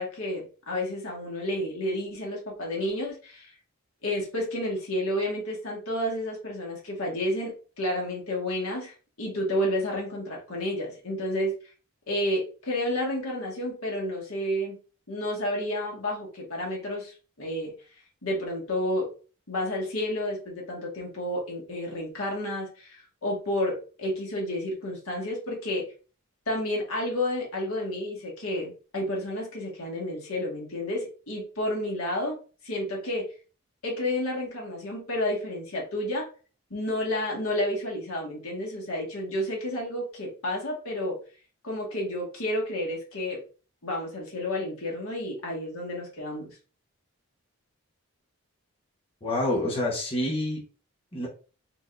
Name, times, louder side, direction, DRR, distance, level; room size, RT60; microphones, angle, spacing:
voice 1, 0.0-3.5 4.0-11.5 12.1-14.8 15.1-17.7 18.2-19.1 19.5-25.8 26.5-32.4 32.6-33.3 33.8-36.3 36.7-41.2 41.6-43.4 43.8-46.6, left 1 dB, 70° left, -2 dB, 1.7 m, -30 dB
voice 2, 49.2-50.6 51.1-51.3, left 1 dB, 25° left, -4 dB, 1.1 m, -27 dB
4.1 x 3.8 x 2.5 m, 0.37 s
head